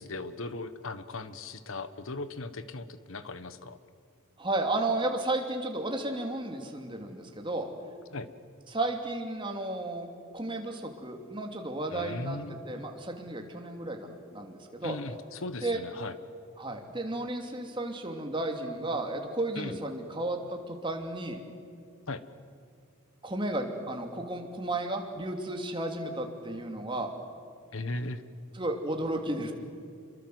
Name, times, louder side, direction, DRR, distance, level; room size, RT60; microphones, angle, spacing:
voice 1, 0.0-3.8 8.1-8.3 11.9-12.9 14.8-16.1 19.6-19.8 22.1-22.2 27.7-28.2, left 2 dB, 70° left, 12 dB, 1.3 m, -38 dB
voice 2, 4.4-7.7 8.7-12.4 12.7-15.0 15.6-15.8 16.6-21.4 23.2-27.1 28.5-29.5, right 2 dB, 25° right, 3 dB, 2.7 m, -33 dB
27.5 x 23.5 x 7.9 m, 2.4 s
head